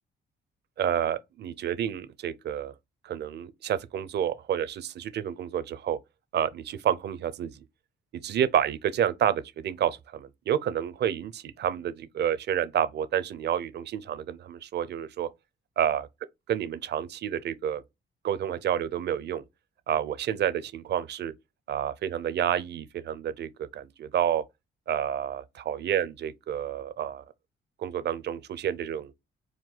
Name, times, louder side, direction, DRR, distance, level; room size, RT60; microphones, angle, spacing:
voice 1, 0.8-2.7 3.0-6.0 6.3-7.6 8.1-15.3 15.8-16.1 16.5-17.8 18.2-19.4 19.9-21.3 21.7-24.4 24.9-27.2 27.8-29.1, right 9 dB, 60° right, 0.5 m, -29 dB
4.5 x 2.2 x 3.8 m
cardioid pair, 90°, 20 cm